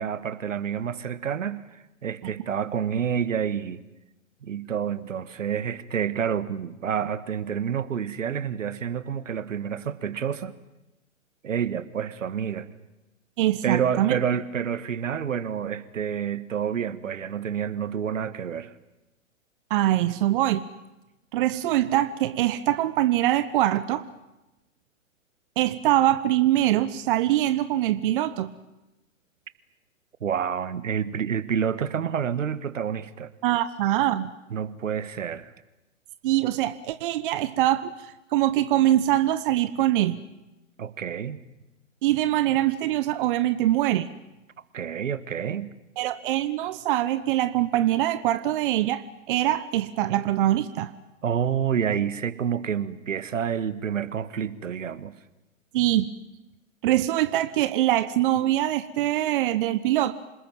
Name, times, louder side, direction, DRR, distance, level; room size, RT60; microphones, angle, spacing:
voice 1, 0.0-3.8 4.4-10.5 11.4-12.7 13.6-18.7 30.2-33.3 34.5-35.5 40.8-41.4 44.7-45.7 51.2-55.1, right 8 dB, 70° right, 15 dB, 1.7 m, -28 dB
voice 2, 13.4-14.2 19.7-20.6 21.3-24.0 25.6-28.5 33.4-34.3 36.2-40.2 42.0-44.1 46.0-50.9 55.7-56.1 56.8-60.1, right 14 dB, 40° right, 13 dB, 1.1 m, -23 dB
27.5 x 20.5 x 9.2 m, 0.96 s
figure-of-eight pair, 120°, 40 cm